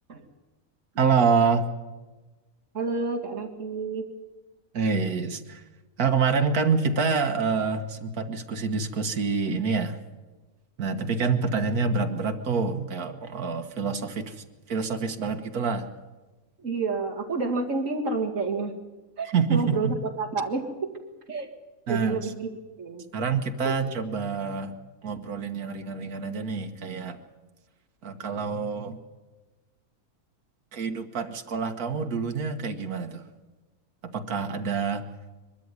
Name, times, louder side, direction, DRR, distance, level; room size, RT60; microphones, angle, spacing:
voice 1, 1.0-1.7 4.7-5.6 6.0-10.0 10.8-15.9 19.3-20.0 21.9-22.2 23.1-24.8 25.0-27.2 28.0-29.0 30.7-33.3 34.0-35.0, right 5 dB, 80° right, 7 dB, 1.8 m, -27 dB
voice 2, 2.7-4.1 16.6-18.7 19.2-20.9 21.3-21.5 21.9-22.5 22.8-23.0 23.6-23.8, right 4 dB, 60° right, 0 dB, 2.7 m, -29 dB
22.5 x 13.0 x 9.7 m, 1.2 s
omnidirectional pair, 1.6 m